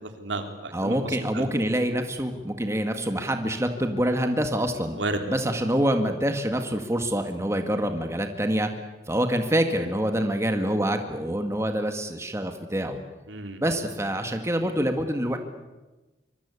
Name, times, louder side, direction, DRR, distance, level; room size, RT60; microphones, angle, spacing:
voice 1, 0.0-1.5 5.0-5.2 13.3-13.6, right 2 dB, 80° right, 6 dB, 3.5 m, -32 dB
voice 2, 0.7-5.0 5.3-8.7 9.1-13.0 13.6-15.4, equal, 15° right, 6 dB, 1.8 m, -26 dB
25.5 x 23.5 x 8.5 m, 1.1 s
head